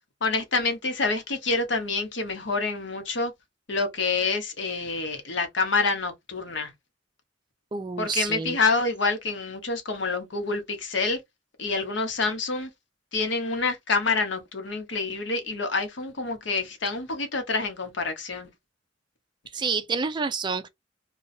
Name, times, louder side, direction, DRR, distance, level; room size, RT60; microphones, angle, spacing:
voice 1, 0.2-3.3 3.7-6.7 8.0-11.2 11.6-12.7 13.1-18.5, left 3 dB, 75° left, 0.9 m, -27 dB
voice 2, 7.7-8.6 19.5-20.7, right 4 dB, 25° right, 0.4 m, -28 dB
2.6 x 2.3 x 4.0 m
head